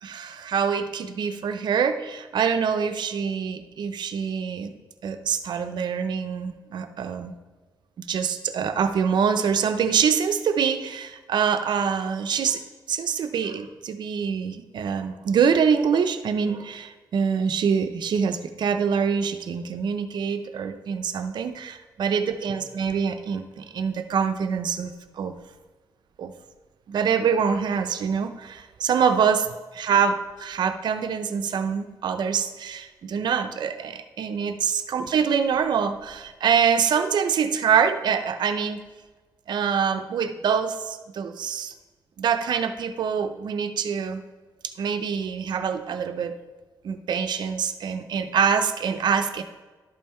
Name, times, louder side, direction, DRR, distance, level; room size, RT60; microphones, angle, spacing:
voice 1, 0.0-4.7 5.0-7.3 8.0-12.6 12.9-25.3 26.2-26.3 26.9-38.8 39.5-41.7 42.2-44.2 44.8-46.4 46.8-49.4, right 7 dB, 70° right, 9 dB, 0.6 m, -25 dB
11.5 x 5.5 x 4.4 m, 1.3 s
wide cardioid pair, 125°, 8 cm